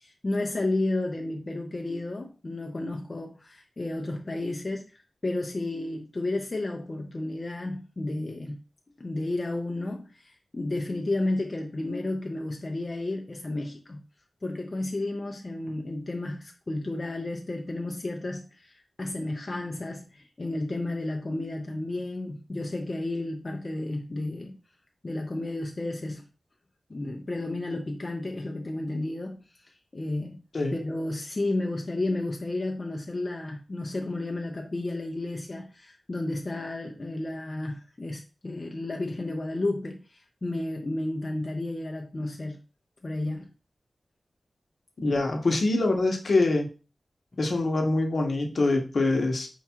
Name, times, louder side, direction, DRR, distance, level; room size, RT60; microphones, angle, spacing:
voice 1, 0.0-8.6 9.0-14.0 14.4-24.5 25.0-26.2 26.9-30.4 30.7-42.6 43.0-43.5, left 2 dB, 35° left, 0.5 m, -32 dB
voice 2, 45.0-46.7 47.4-49.5, left 2 dB, 60° left, 0.9 m, -24 dB
4.7 x 2.3 x 4.3 m
wide cardioid pair, 95°, 0 cm